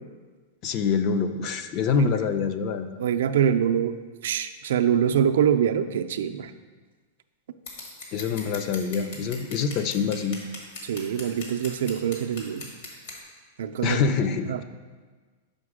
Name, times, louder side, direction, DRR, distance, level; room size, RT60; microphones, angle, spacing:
voice 1, 0.6-3.0 8.1-10.4 13.8-14.6, left 5 dB, 35° left, 9 dB, 0.4 m, -25 dB
voice 2, 3.0-4.0 4.2-6.5 10.8-12.7 13.6-14.0 14.5-14.6, right 9 dB, 75° right, 8 dB, 0.4 m, -24 dB
Scissors, 7.7-13.2, left 3 dB, 60° left, 1.7 m, -40 dB
5.7 x 5.2 x 4.8 m, 1.4 s
supercardioid pair, 155°, 0 cm